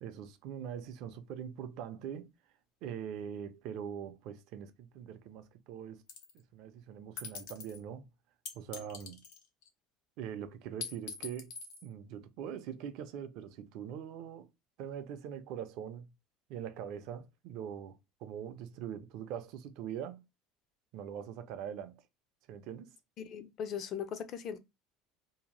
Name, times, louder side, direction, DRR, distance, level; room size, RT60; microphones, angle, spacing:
voice 1, 0.0-2.3 2.8-6.0 6.5-8.1 8.5-9.2 10.2-11.5 11.8-14.5 14.8-16.1 16.5-20.2 20.9-22.0 22.5-22.9, right 9 dB, 60° right, 0.4 m, -42 dB
sound 1, 6.1-6.4 7.2-7.8 8.5-9.7 10.8-11.9, left 6 dB, 70° left, 0.9 m, -43 dB
voice 2, 23.2-24.6, left 8 dB, 40° left, 0.4 m, -39 dB
2.7 x 2.1 x 2.9 m
cardioid pair, 145°, 0 cm